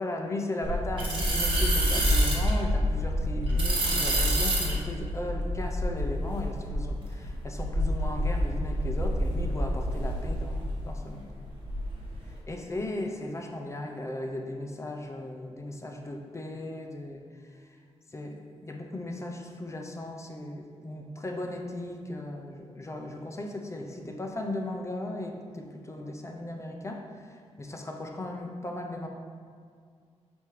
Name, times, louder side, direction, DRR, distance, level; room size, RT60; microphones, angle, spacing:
voice 1, 0.0-11.3 12.5-17.2 17.5-17.6 18.1-29.1, left 1 dB, 25° left, 2 dB, 0.6 m, -37 dB
sound 1, 0.6-10.8 11.1-12.1, equal, 45° right, 1.5 m, -27 dB
5.6 x 5.2 x 3.2 m, 2.1 s
cardioid pair, 95°, 12 cm